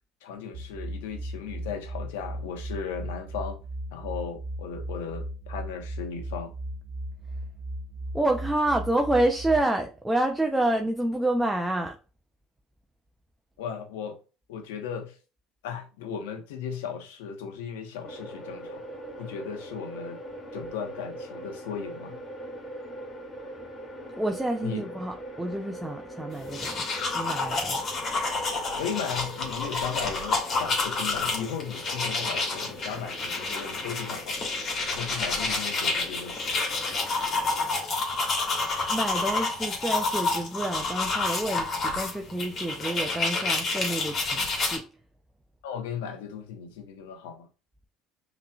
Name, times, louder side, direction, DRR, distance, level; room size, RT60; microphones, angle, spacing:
voice 1, 0.2-3.6 3.9-6.5 13.6-14.2 14.5-15.2 15.6-18.8 19.2-20.2 20.5-22.2 24.6-24.8 28.8-34.5 34.9-36.6 45.6-47.5, left 7 dB, 90° left, 0.9 m, -36 dB
sound 1, 0.5-9.6, right 1 dB, 65° right, 0.9 m, -36 dB
voice 2, 8.1-12.0 24.2-26.8 27.1-27.8 38.9-44.8, right 1 dB, 10° right, 0.6 m, -28 dB
sound 2, 18.0-37.7, equal, 25° left, 1.5 m, -42 dB
sound 3, 26.4-44.8, left 3 dB, 45° left, 1.8 m, -29 dB
5.7 x 3.1 x 2.3 m
supercardioid pair, 90°, 0 cm